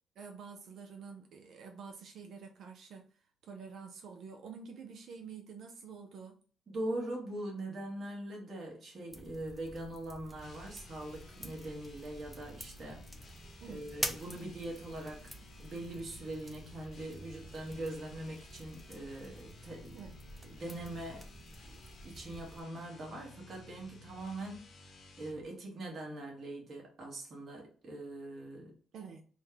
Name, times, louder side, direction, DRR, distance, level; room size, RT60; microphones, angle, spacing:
voice 1, 0.2-3.1 3.4-6.4 13.6-13.9 19.9-20.2 28.9-29.2, right 5 dB, 70° right, 0.4 m, -48 dB
voice 2, 6.7-13.0 13.7-20.0 20.4-21.3 22.0-24.6 25.2-28.7, right 1 dB, 45° right, 1.3 m, -42 dB
sound 1, 9.1-22.6, equal, ahead, 0.5 m, -47 dB
sound 2, 10.3-25.4, left 2 dB, 55° left, 0.9 m, -55 dB
3.0 x 2.2 x 3.7 m
cardioid pair, 90°, 0 cm